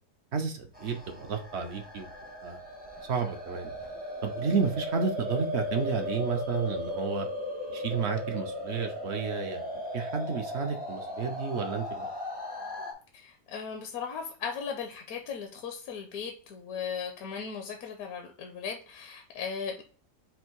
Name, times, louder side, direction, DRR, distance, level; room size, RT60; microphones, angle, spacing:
voice 1, 0.3-2.1 2.4-2.6 3.1-3.7 4.2-7.3 7.7-12.1, right 5 dB, 60° right, 4 dB, 0.7 m, -31 dB
sound 1, 0.7-12.9, left 1 dB, 10° right, 0.5 m, -37 dB
voice 2, 13.1-19.8, left 6 dB, 70° left, 3 dB, 1.1 m, -37 dB
4.5 x 2.6 x 4.4 m, 0.41 s
omnidirectional pair, 1.7 m